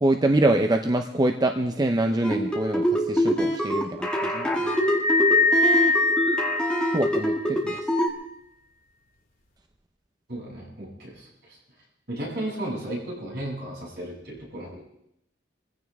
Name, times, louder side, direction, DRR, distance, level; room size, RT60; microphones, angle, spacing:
voice 1, 0.0-4.7 6.9-7.8, right 1 dB, 20° right, 5 dB, 0.6 m, -25 dB
sound 1, 2.2-8.1, equal, 5° left, 2.2 m, -25 dB
sound 2, 4.7-7.3, left 2 dB, 50° left, 2.3 m, -23 dB
voice 2, 10.3-11.6 12.1-14.8, right 1 dB, 65° right, -4 dB, 7.6 m, -34 dB
23.5 x 15.5 x 3.5 m, 0.82 s
head